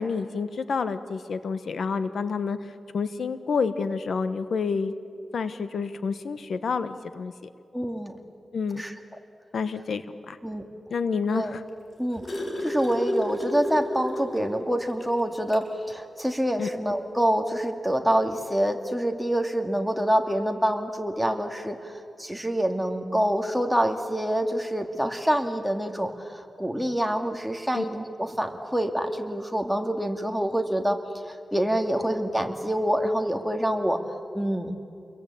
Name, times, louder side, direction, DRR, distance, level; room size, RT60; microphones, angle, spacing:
voice 1, 0.0-4.9 5.3-7.5 8.5-8.8 9.5-10.4 10.9-11.6 16.6-16.7 27.7-27.8, left 5 dB, 80° left, 11 dB, 1.2 m, -29 dB
voice 2, 7.7-8.2 8.8-8.9 10.4-10.7 11.3-11.5 12.0-31.0 31.3-34.7, equal, ahead, 4 dB, 2.4 m, -26 dB
sound 1, 11.7-14.6 15.0-15.1 15.5-15.7 16.8-16.9, equal, 45° left, 4.8 m, -31 dB
29.0 x 22.5 x 8.6 m, 2.6 s
cardioid pair, 75°, 0 cm